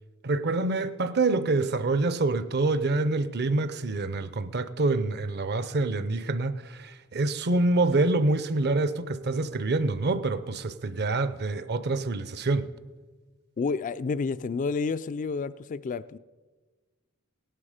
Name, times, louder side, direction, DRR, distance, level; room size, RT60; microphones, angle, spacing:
voice 1, 0.2-12.7, right 2 dB, 50° right, 0.6 m, -26 dB
voice 2, 13.6-16.2, left 4 dB, 35° left, 0.3 m, -30 dB
17.0 x 11.0 x 5.0 m
head